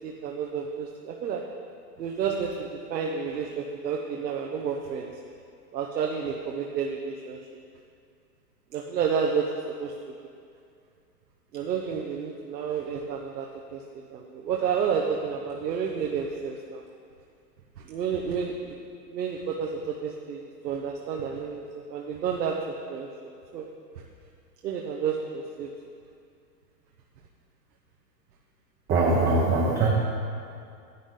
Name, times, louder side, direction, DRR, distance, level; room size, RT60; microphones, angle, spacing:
voice 1, 0.0-1.4 2.0-5.1 5.7-7.4 8.7-9.4 9.8-9.9 11.5-13.8 14.1-16.8 17.9-18.8 19.1-23.1 23.5-23.7 24.6-25.7, right 6 dB, 80° right, 0 dB, 1.0 m, -30 dB
voice 2, 28.9-29.9, right 3 dB, 20° right, -3 dB, 0.9 m, -22 dB
11.0 x 8.0 x 3.8 m, 2.4 s
hypercardioid pair, 135°, 49 cm